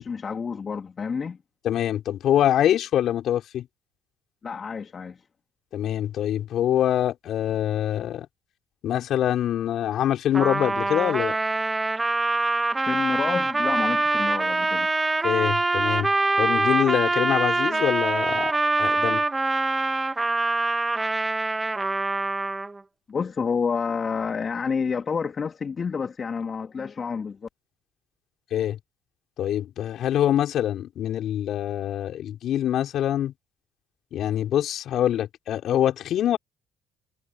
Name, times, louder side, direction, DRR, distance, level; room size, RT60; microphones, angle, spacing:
voice 1, 0.0-1.4 4.4-5.2 12.8-14.9 23.1-27.5, left 5 dB, 40° left, 2.6 m, -29 dB
voice 2, 1.6-3.7 5.7-8.3 8.8-11.4 15.2-16.1 16.4-18.5 18.8-19.2 28.5-28.8 29.4-33.3 34.1-36.4, left 11 dB, 60° left, 4.8 m, -24 dB
Trumpet, 10.3-22.8, right 2 dB, 20° right, 2.4 m, -24 dB
hypercardioid pair, 60°, 0 cm